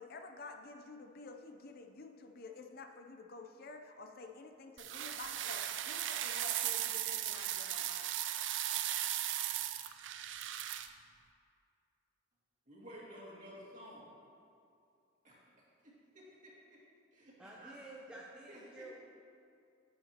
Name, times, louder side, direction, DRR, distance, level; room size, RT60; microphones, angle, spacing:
voice 1, 0.0-8.1, left 3 dB, 55° left, 5 dB, 0.5 m, -50 dB
sound 1, 4.8-10.9, right 11 dB, 75° right, 0.4 m, -37 dB
voice 2, 12.7-14.1 15.2-15.4 15.8-16.8 17.1-17.7 18.5-18.6, equal, 45° right, -5 dB, 2.2 m, -53 dB
voice 3, 17.4-18.9, right 2 dB, 5° right, -4 dB, 0.6 m, -50 dB
10.5 x 8.7 x 2.9 m, 2.4 s
head